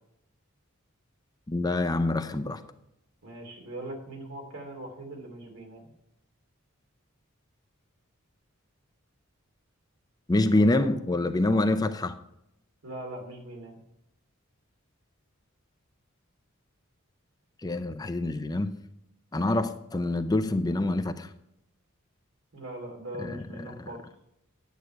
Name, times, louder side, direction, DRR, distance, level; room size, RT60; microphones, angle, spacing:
voice 1, 1.5-2.6 10.3-12.2 17.6-18.8 19.3-21.3 23.2-23.4 23.8-23.9, left 2 dB, 20° left, 9 dB, 0.5 m, -26 dB
voice 2, 3.2-5.8 10.5-11.0 11.4-11.6 12.8-13.8 19.5-19.7 22.5-24.1, right 1 dB, 75° right, 1 dB, 2.8 m, -41 dB
9.8 x 8.1 x 4.6 m, 0.80 s
head